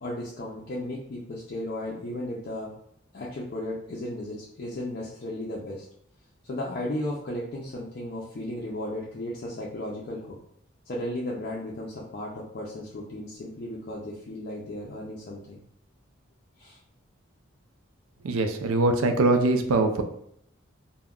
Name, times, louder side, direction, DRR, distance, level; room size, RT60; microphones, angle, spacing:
voice 1, 0.0-2.7 3.1-5.9 6.5-10.4 10.9-15.6 16.6-16.8, left 1 dB, 45° left, -4 dB, 0.4 m, -35 dB
voice 2, 18.2-20.0, right 2 dB, 85° right, 6 dB, 0.4 m, -22 dB
2.3 x 2.1 x 3.5 m, 0.69 s
head